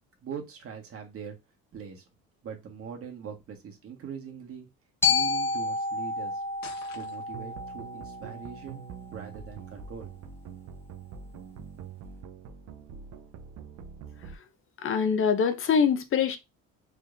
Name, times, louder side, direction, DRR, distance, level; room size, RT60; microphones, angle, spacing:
voice 1, 0.2-1.4 1.7-2.0 2.4-4.7 5.1-6.5 6.9-8.8 9.1-10.1, right 7 dB, 50° right, 1.6 m, -42 dB
Glockenspiel, 5.0-9.1, left 4 dB, 10° left, 1.3 m, -30 dB
sound 1, 6.6-7.6, left 7 dB, 70° left, 1.0 m, -47 dB
sound 2, 7.3-14.4, right 6 dB, 65° right, 0.8 m, -44 dB
voice 2, 14.8-16.4, left 6 dB, 45° left, 0.7 m, -24 dB
4.2 x 3.2 x 2.6 m
supercardioid pair, 90°, 30 cm